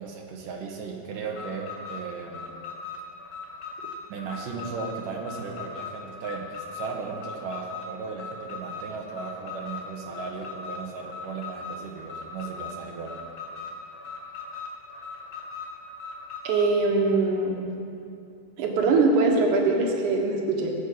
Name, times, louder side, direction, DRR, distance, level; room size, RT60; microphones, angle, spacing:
voice 1, 0.0-2.5 4.1-13.1, right 5 dB, 90° right, -1 dB, 2.8 m, -36 dB
Alarm, 1.3-16.7, left 5 dB, 65° left, 4.0 m, -39 dB
voice 2, 16.4-17.6 18.6-20.7, right 3 dB, 70° right, 1 dB, 2.8 m, -22 dB
20.5 x 7.9 x 5.5 m, 2.6 s
omnidirectional pair, 3.7 m